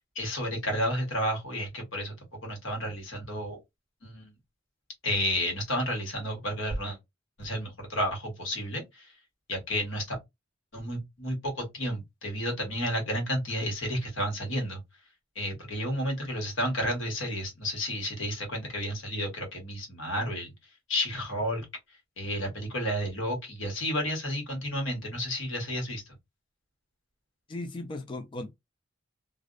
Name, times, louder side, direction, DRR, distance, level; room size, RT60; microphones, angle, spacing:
voice 1, 0.1-2.2 2.4-3.6 4.0-4.3 5.0-7.0 7.4-9.1 9.5-10.2 10.7-14.8 15.3-20.5 20.9-21.6 22.2-26.0, equal, 80° left, 1.2 m, -31 dB
voice 2, 27.5-28.5, left 2 dB, 25° left, 0.3 m, -37 dB
2.5 x 2.0 x 2.4 m
head